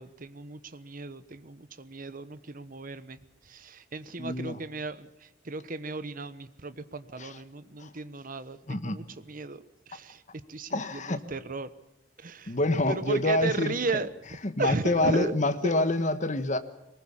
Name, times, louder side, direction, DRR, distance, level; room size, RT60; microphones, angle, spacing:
voice 1, 0.0-3.2 3.5-5.1 5.4-10.2 10.5-11.7 12.2-12.5 12.9-14.1 14.6-15.3 15.6-15.8, right 3 dB, 50° right, 13 dB, 1.1 m, -35 dB
voice 2, 4.2-4.6 7.2-7.4 7.8-7.9 8.7-9.0 10.7-11.2 12.5-13.7 14.4-16.6, left 2 dB, 40° left, 9 dB, 1.4 m, -27 dB
22.5 x 20.0 x 7.4 m, 0.90 s
head